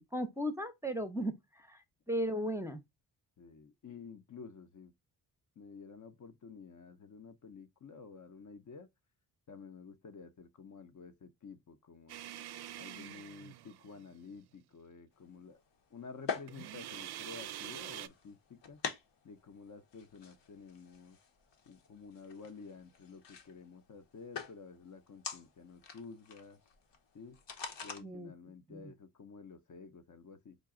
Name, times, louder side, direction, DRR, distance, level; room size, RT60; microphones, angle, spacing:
voice 1, 0.0-2.8 28.0-28.3 28.7-28.9, equal, 5° right, 0.7 m, -36 dB
voice 2, 3.4-4.9 5.6-8.9 9.5-12.2 12.8-15.6 15.9-18.8 19.2-21.2 21.7-26.6 27.1-27.4 27.8-30.6, left 5 dB, 45° left, 0.6 m, -51 dB
sound 1, 12.1-14.1 16.5-18.1, right 12 dB, 60° right, 0.5 m, -45 dB
sound 2, 15.2-28.0, left 6 dB, 75° left, 1.0 m, -46 dB
4.9 x 2.2 x 3.6 m
cardioid pair, 75°, 44 cm